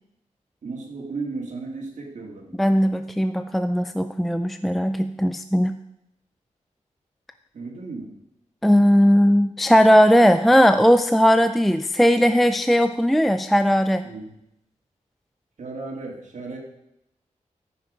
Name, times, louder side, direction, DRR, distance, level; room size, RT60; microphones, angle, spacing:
voice 1, 0.6-2.6 7.5-8.1 14.0-14.3 15.6-16.6, right 3 dB, 65° right, -2 dB, 2.3 m, -34 dB
voice 2, 2.6-5.8 8.6-14.0, equal, ahead, 9 dB, 0.4 m, -18 dB
13.5 x 5.9 x 5.1 m, 0.82 s
wide cardioid pair, 95°, 13 cm